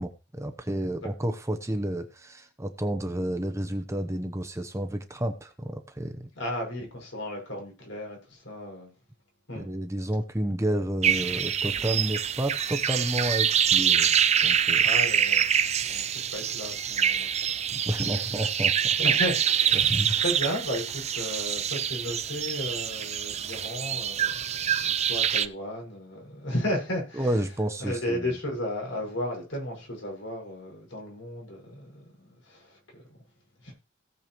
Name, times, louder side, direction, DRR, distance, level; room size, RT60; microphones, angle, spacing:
voice 1, 0.0-6.3 9.6-14.8 17.7-19.0 19.7-20.2 27.2-28.2, right 1 dB, 15° right, 0.9 m, -30 dB
voice 2, 6.3-8.9 9.5-9.7 14.3-14.4 14.8-18.2 19.0-27.5 27.8-33.2 33.6-33.7, equal, 80° left, 5.8 m, -34 dB
sound 1, 11.0-25.5, right 8 dB, 35° right, 0.5 m, -25 dB
17.5 x 6.9 x 3.1 m
head